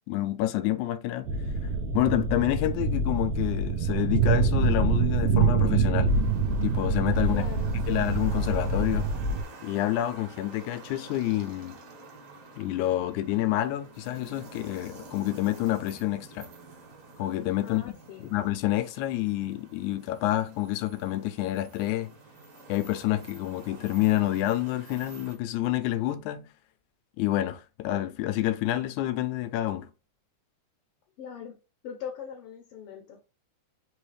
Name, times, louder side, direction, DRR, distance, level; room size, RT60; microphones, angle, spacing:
voice 1, 0.1-1.3 1.9-6.1 6.6-7.5 7.9-9.1 9.6-11.8 12.6-16.5 17.2-17.9 18.2-22.1 22.7-26.5 27.2-29.9, left 14 dB, 90° left, 2.0 m, -28 dB
sound 1, 1.2-9.4, right 4 dB, 80° right, 1.4 m, -25 dB
sound 2, 6.0-25.3, right 3 dB, 55° right, 2.0 m, -48 dB
voice 2, 7.3-7.7 17.6-18.3 31.2-31.6 31.8-33.2, left 8 dB, 70° left, 1.4 m, -41 dB
4.9 x 3.1 x 3.1 m
omnidirectional pair, 3.3 m